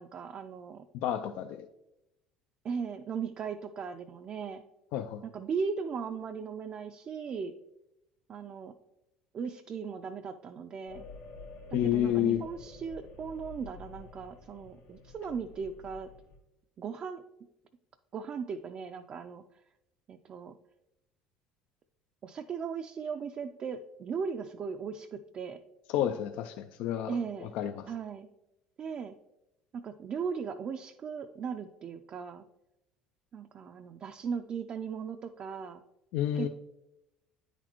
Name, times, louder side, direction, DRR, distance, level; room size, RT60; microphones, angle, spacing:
voice 1, 0.0-0.8 2.6-4.6 5.2-7.5 8.3-8.7 9.3-11.1 11.8-16.1 16.8-17.2 18.1-19.4 20.1-20.6 22.2-25.6 27.1-27.5 27.9-28.3 28.8-29.2 29.7-32.4 33.3-35.8 36.3-36.5, right 6 dB, 45° right, 6 dB, 0.4 m, -37 dB
voice 2, 1.0-1.7 4.9-5.2 11.7-12.5 25.9-27.9 36.1-36.5, left 11 dB, 70° left, 9 dB, 0.3 m, -30 dB
sound 1, 10.9-16.4, left 3 dB, 90° left, 1.3 m, -49 dB
9.1 x 4.1 x 3.0 m, 0.90 s
supercardioid pair, 85°, 2 cm